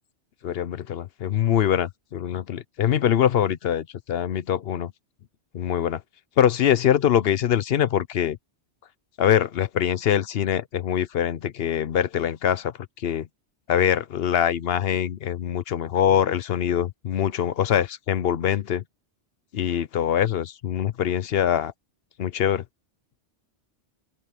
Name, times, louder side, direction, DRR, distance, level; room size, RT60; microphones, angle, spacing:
voice 1, 0.4-4.9 5.5-6.0 6.4-8.4 9.2-12.7 13.0-13.3 13.7-18.8 19.5-21.7 22.2-22.6, left 9 dB, 60° left, 0.8 m, -23 dB
open air
omnidirectional pair, 1.2 m